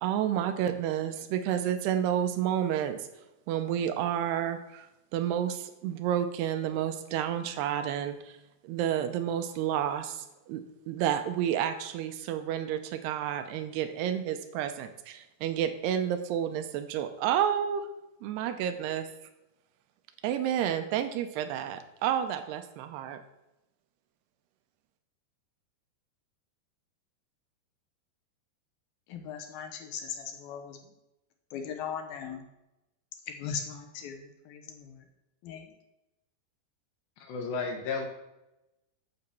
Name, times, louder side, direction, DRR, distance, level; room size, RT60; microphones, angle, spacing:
voice 1, 0.0-3.0 3.5-4.9 5.1-8.4 8.6-17.9 18.2-19.1 20.2-23.2, right 10 dB, 85° right, 9 dB, 2.7 m, -30 dB
voice 2, 29.1-30.8 31.5-32.4 33.4-34.2 34.5-34.9 35.4-35.6, left 7 dB, 70° left, 5 dB, 2.6 m, -38 dB
voice 3, 37.2-38.1, left 4 dB, 90° left, 3 dB, 3.7 m, -33 dB
9.8 x 5.9 x 6.8 m, 0.96 s
omnidirectional pair, 4.8 m